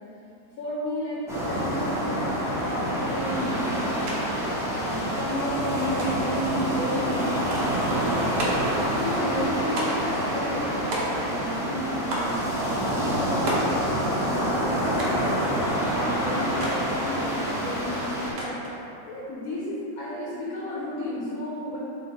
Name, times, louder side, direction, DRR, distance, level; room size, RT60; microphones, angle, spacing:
voice 1, 0.6-18.6 19.0-21.8, equal, 85° left, -7 dB, 1.1 m, -33 dB
sound 1, 1.3-18.3, equal, 5° right, 0.3 m, -27 dB
sound 2, 4.1-4.2 4.5-5.2 6.0-6.4 7.5-7.8 8.4-8.8 9.8-10.2 10.9-11.5 12.1-12.4 13.5-13.8 15.0-15.3 16.6-16.8 18.4-18.8, right 1 dB, 75° right, 1.2 m, -32 dB
4.0 x 2.5 x 4.1 m, 2.9 s
omnidirectional pair, 1.5 m